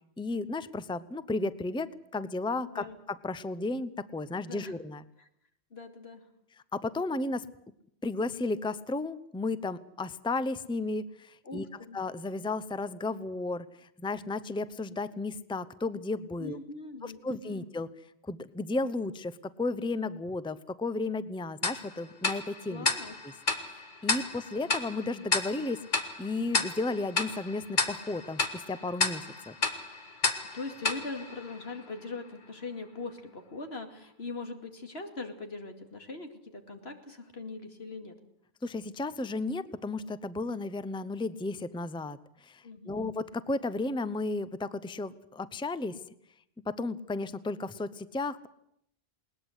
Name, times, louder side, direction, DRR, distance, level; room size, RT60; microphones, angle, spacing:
voice 1, 0.2-5.0 6.7-7.5 8.0-11.7 11.9-16.6 17.0-17.9 18.2-22.9 23.7-29.6 38.6-46.0 46.7-48.5, left 3 dB, 5° left, 15 dB, 0.6 m, -34 dB
voice 2, 2.6-3.0 4.5-4.7 5.2-5.3 5.7-6.3 11.4-12.0 16.4-17.7 22.7-23.2 30.5-38.2 42.6-43.1, left 3 dB, 85° left, 5 dB, 2.7 m, -41 dB
Tick-tock, 21.6-32.1, left 3 dB, 50° left, 1.8 m, -32 dB
20.5 x 19.5 x 8.1 m, 0.74 s
omnidirectional pair, 1.0 m